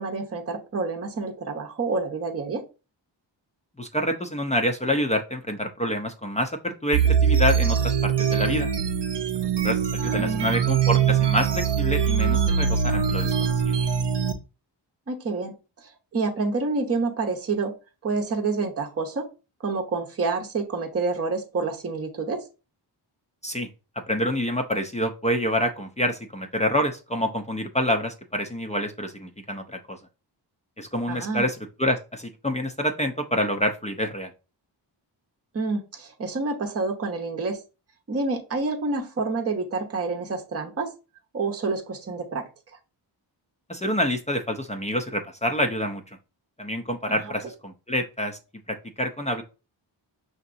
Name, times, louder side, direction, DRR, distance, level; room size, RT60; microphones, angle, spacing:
voice 1, 0.0-2.6 10.1-10.5 15.1-17.7 18.0-19.3 19.6-22.4 31.1-31.5 35.5-37.6 38.1-40.9 41.3-42.4 47.1-47.3, right 3 dB, 30° right, 2 dB, 0.8 m, -28 dB
voice 2, 3.8-8.7 9.6-13.8 23.4-23.7 24.1-30.0 30.8-34.3 43.7-46.0 46.6-48.4 48.7-49.4, equal, 15° left, 4 dB, 0.5 m, -27 dB
sound 1, 6.9-14.3, right 7 dB, 65° right, 0.7 m, -22 dB
5.8 x 2.8 x 2.5 m, 0.31 s
cardioid pair, 80°, 45 cm